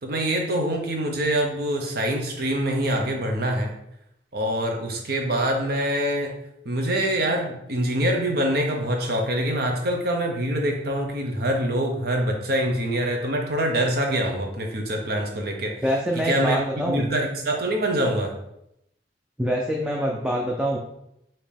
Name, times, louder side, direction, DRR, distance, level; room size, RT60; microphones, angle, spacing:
voice 1, 0.0-3.7 4.3-6.3 6.6-15.7 16.2-18.3, right 1 dB, 60° right, 2 dB, 0.9 m, -25 dB
voice 2, 15.8-17.1 19.4-20.8, equal, 5° right, -1 dB, 0.4 m, -25 dB
5.2 x 2.9 x 3.3 m, 0.81 s
head